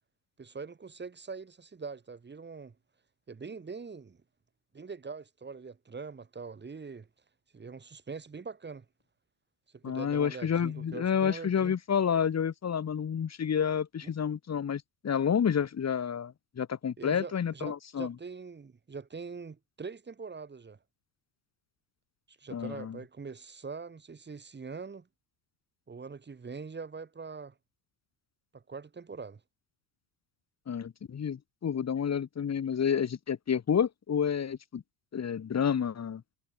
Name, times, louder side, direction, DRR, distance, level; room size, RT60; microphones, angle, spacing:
voice 1, 0.4-2.7 3.3-4.2 4.7-7.1 7.5-8.9 9.7-11.7 14.0-14.1 17.0-20.8 22.4-25.1 25.9-27.5 28.5-29.4, right 5 dB, 25° right, 5.6 m, -43 dB
voice 2, 9.8-18.1 22.5-23.0 30.7-34.8 35.1-36.2, left 7 dB, 35° left, 5.4 m, -29 dB
supercardioid pair, 95°, 45 cm